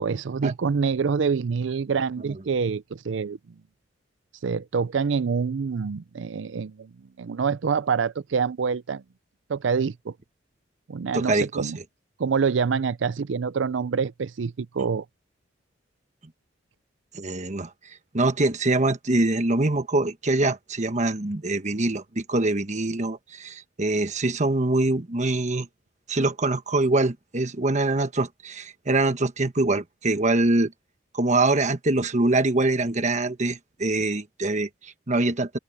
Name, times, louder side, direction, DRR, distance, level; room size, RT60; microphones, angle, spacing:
voice 1, 0.0-3.4 4.4-6.9 7.2-9.0 9.5-10.1 10.9-11.8 12.2-15.0, right 5 dB, 75° right, 0.5 m, -26 dB
voice 2, 11.1-11.7 17.1-17.7 18.1-25.7 26.1-30.7 31.1-35.6, right 2 dB, 40° right, 1.3 m, -24 dB
open air
head